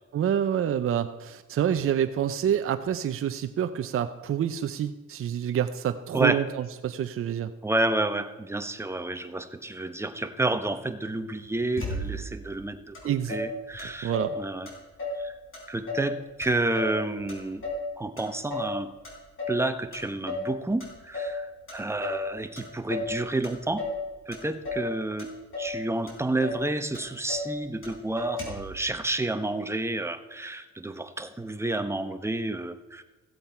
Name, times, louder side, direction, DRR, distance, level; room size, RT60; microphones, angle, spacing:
voice 1, 0.1-7.5 13.0-13.3 14.0-14.4, right 9 dB, 45° right, 9 dB, 0.6 m, -27 dB
voice 2, 7.6-14.7 15.2-15.4 15.7-17.6 18.0-18.9 19.5-23.9 24.3-25.3 25.6-33.0, right 2 dB, 10° right, 8 dB, 0.9 m, -30 dB
Motor vehicle (road), 11.8-12.4 12.9-13.0 13.3-14.4 14.7-15.3 15.5-16.1 16.4-17.9 18.2-18.8 19.0-19.6 19.9-20.5 20.8-21.4 21.7-22.3 22.6-23.1 23.4-24.0 24.3-24.9 25.2-25.8 26.1-26.2 26.4-26.7 26.9-27.5 27.8-27.9 28.2-28.7, left 2 dB, 45° left, 3.9 m, -33 dB
15.0 x 8.0 x 4.4 m, 1.2 s
cardioid pair, 90°, 30 cm